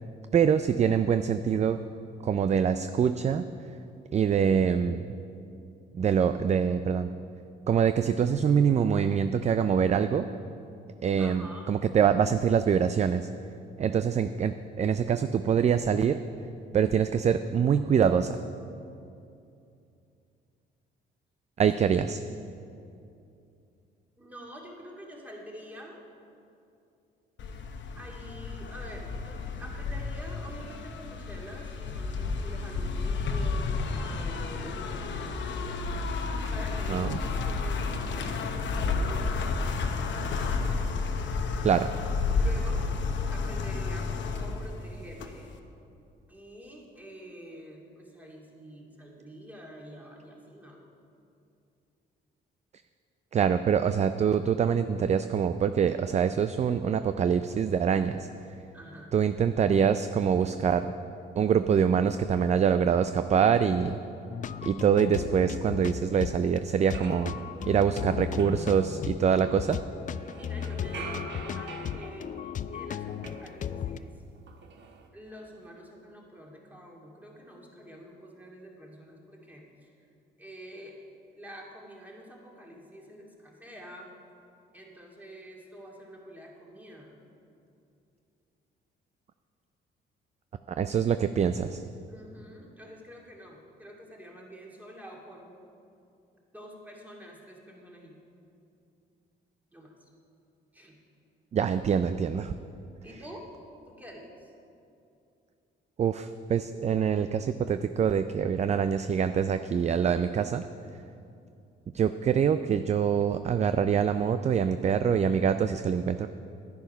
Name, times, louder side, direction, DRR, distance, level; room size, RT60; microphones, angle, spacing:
voice 1, 0.3-1.8 2.2-3.5 4.1-5.1 5.9-7.1 7.7-10.3 11.0-13.3 13.8-16.2 16.7-18.4 21.6-22.2 36.9-37.1 41.6-41.9 53.3-58.3 59.1-60.9 61.4-64.0 64.6-67.3 67.6-69.8 90.8-91.8 101.5-102.5 106.0-110.6 111.9-116.3, right 7 dB, 35° right, 10 dB, 0.4 m, -25 dB
voice 2, 11.2-11.7 21.9-22.3 24.2-26.0 27.9-35.8 36.5-39.6 42.3-42.9 43.2-45.5 46.3-50.8 58.7-59.1 70.3-74.2 75.1-79.9 80.4-80.9 81.3-84.1 84.7-87.2 92.1-95.6 96.5-98.2 99.7-100.1 100.7-101.0 103.0-103.5 103.9-104.5, equal, 10° right, -2 dB, 2.3 m, -47 dB
sound 1, 27.4-45.6, left 4 dB, 65° left, 0.9 m, -31 dB
sound 2, 64.3-74.0, left 8 dB, 40° left, 0.4 m, -36 dB
sound 3, 66.7-69.8 70.2-74.1 74.4-75.1, right 5 dB, 65° right, 1.2 m, -46 dB
10.5 x 9.9 x 5.5 m, 2.6 s
cardioid pair, 90°, 20 cm